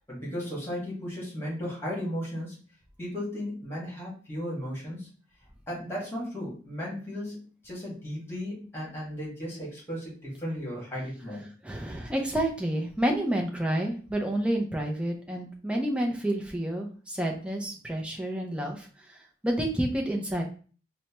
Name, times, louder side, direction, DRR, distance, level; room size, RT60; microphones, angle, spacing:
voice 1, 0.1-2.6 3.0-5.1 5.7-11.5, equal, 10° left, -6 dB, 1.6 m, -35 dB
voice 2, 11.6-19.2 19.4-20.4, right 1 dB, 5° right, 0 dB, 0.5 m, -29 dB
4.2 x 2.2 x 2.9 m, 0.40 s
head